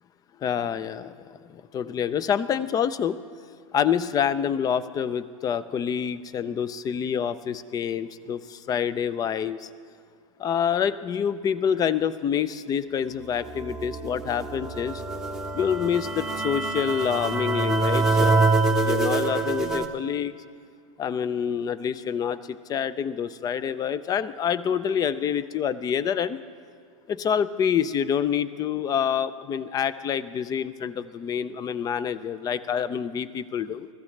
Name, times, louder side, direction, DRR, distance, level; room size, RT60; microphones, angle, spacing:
voice 1, 0.4-1.2 1.5-3.2 3.7-9.7 10.4-15.0 15.5-18.5 18.8-20.3 21.0-26.4 27.1-33.9, left 8 dB, 20° left, 16 dB, 0.5 m, -27 dB
sound 1, 13.3-19.9, right 3 dB, 5° right, 0.9 m, -25 dB
21.5 x 14.0 x 3.2 m, 2.1 s
hypercardioid pair, 120°, 18 cm